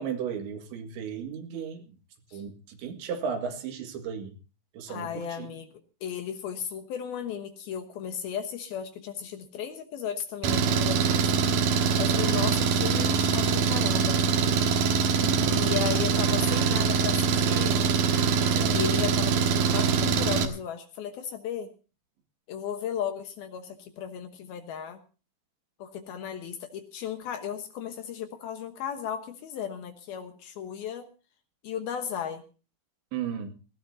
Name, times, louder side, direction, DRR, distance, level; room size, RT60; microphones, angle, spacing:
voice 1, 0.0-1.8 2.3-4.4 4.7-5.5 12.3-12.5 15.1-15.7 18.5-18.8 33.1-33.5, right 7 dB, 80° right, 4 dB, 4.3 m, -35 dB
voice 2, 4.9-11.2 12.0-14.2 15.5-17.9 18.7-21.7 22.5-25.0 25.8-31.1 31.6-32.4, left 8 dB, 70° left, 7 dB, 2.7 m, -35 dB
Engine, 10.4-20.5, right 5 dB, 65° right, 2.8 m, -24 dB
20.0 x 17.0 x 2.7 m, 0.35 s
omnidirectional pair, 5.2 m